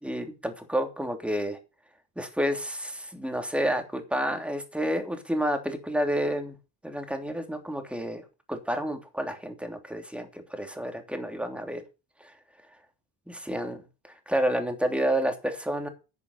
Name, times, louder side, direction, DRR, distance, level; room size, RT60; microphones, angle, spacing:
voice 1, 0.0-1.6 2.2-6.5 6.8-11.8 12.2-12.3 13.3-15.9, equal, 5° right, 5 dB, 3.1 m, -30 dB
11.5 x 6.9 x 7.2 m, 0.30 s
cardioid pair, 100°, 43 cm